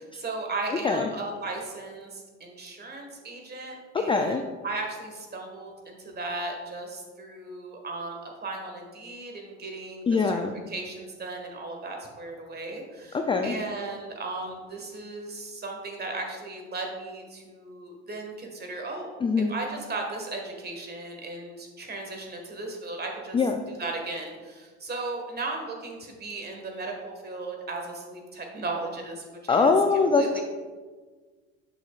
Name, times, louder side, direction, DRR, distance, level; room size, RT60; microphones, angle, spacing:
voice 1, 0.0-10.4 10.7-23.4 23.7-29.7 30.1-30.4, right 2 dB, 30° right, 2 dB, 1.7 m, -36 dB
voice 2, 3.9-4.4 10.1-10.6 13.1-13.6 19.2-19.5 23.3-23.6 29.5-30.4, left 4 dB, 15° left, 5 dB, 0.4 m, -23 dB
8.8 x 6.0 x 2.4 m, 1.4 s
hypercardioid pair, 80°, 35 cm